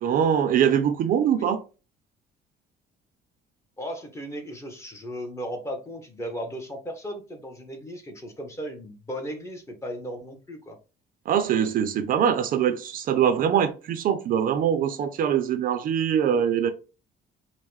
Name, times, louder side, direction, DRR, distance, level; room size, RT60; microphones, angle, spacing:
voice 1, 0.0-1.6 11.3-16.7, right 8 dB, 50° right, 0.4 m, -23 dB
voice 2, 3.8-10.8, equal, 15° left, 0.8 m, -36 dB
5.4 x 2.1 x 3.1 m
cardioid pair, 160°, 18 cm